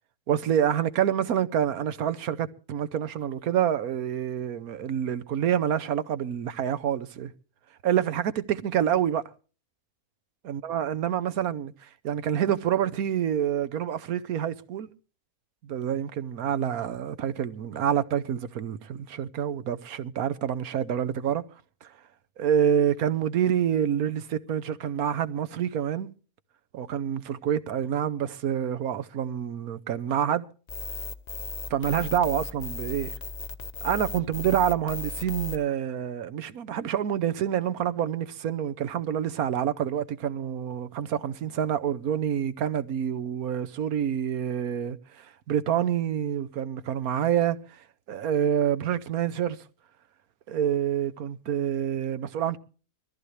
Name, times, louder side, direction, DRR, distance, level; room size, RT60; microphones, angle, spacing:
voice 1, 0.3-7.3 7.8-9.2 10.4-14.9 15.6-21.4 21.8-21.9 22.4-26.1 26.7-30.5 31.7-33.1 33.8-47.8 48.1-49.6 50.5-52.6, right 9 dB, 80° right, 1.3 m, -27 dB
sound 1, 30.7-35.6, left 5 dB, 35° left, 0.8 m, -36 dB
22.0 x 14.5 x 3.3 m
omnidirectional pair, 1.5 m